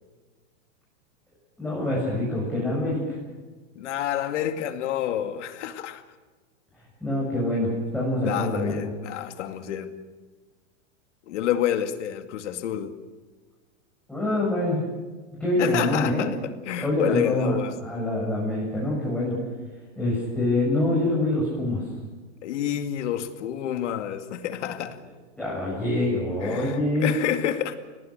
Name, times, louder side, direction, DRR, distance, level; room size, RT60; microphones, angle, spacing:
voice 1, 1.6-3.2 7.0-8.8 14.1-14.8 15.4-16.3 16.8-19.4 20.0-21.8 25.4-27.1, left 1 dB, 5° left, 7.5 m, -25 dB
voice 2, 3.7-6.0 8.3-9.9 11.3-13.0 15.6-17.8 22.4-25.0 26.4-27.7, left 10 dB, 70° left, 2.3 m, -29 dB
28.0 x 18.5 x 6.7 m
supercardioid pair, 145°, 37 cm